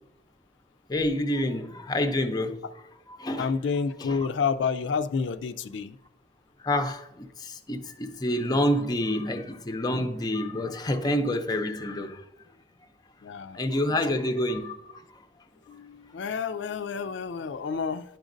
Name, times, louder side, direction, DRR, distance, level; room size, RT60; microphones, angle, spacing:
voice 1, 0.9-2.6 3.1-3.5 4.0-4.2 6.6-12.2 13.5-14.9, left 1 dB, 20° left, 0.5 m, -28 dB
voice 2, 3.4-5.9 13.2-13.6 14.1-14.2 15.7-18.0, left 5 dB, 90° left, 0.4 m, -29 dB
10.5 x 5.0 x 2.6 m
head